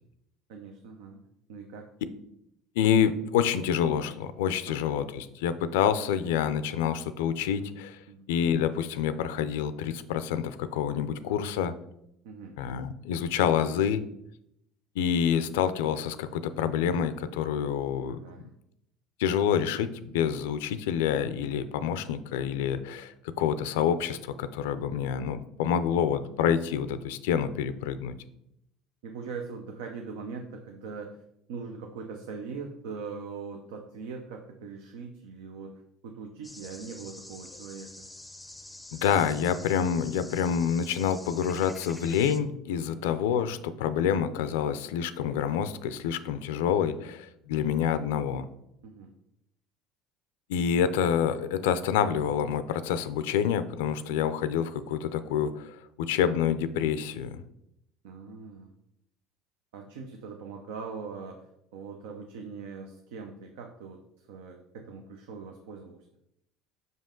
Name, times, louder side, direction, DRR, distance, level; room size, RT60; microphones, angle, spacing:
voice 1, 0.5-1.2 1.5-1.9 4.7-5.0 8.1-8.3 12.2-12.6 18.1-18.5 25.9-26.1 29.0-31.2 31.5-38.1 42.8-43.0 48.8-49.1 58.0-58.7 59.7-66.0, right 5 dB, 85° right, 3 dB, 0.6 m, -41 dB
voice 2, 2.8-8.0 8.3-11.7 12.6-14.0 15.0-18.2 19.2-28.1 38.9-48.5 50.5-57.4, left 8 dB, 85° left, 13 dB, 0.4 m, -27 dB
sound 1, 36.4-42.4, left 1 dB, 5° left, 0.5 m, -47 dB
5.4 x 5.3 x 3.7 m, 0.79 s
supercardioid pair, 95°, 0 cm